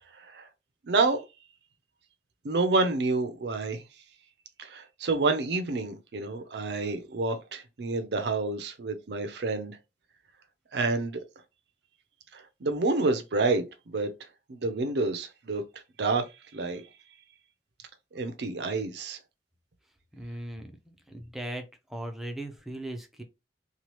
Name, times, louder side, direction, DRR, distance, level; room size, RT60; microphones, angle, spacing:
voice 1, 0.2-0.5 0.8-1.2 2.4-3.8 4.6-9.8 10.7-11.2 12.3-14.1 14.5-15.6 16.0-16.3 16.5-16.8 18.1-19.2, right 3 dB, 70° right, 0.5 m, -28 dB
voice 2, 20.2-20.7 21.1-21.6 21.9-23.2, right 1 dB, ahead, 0.5 m, -37 dB
3.1 x 2.3 x 2.9 m
head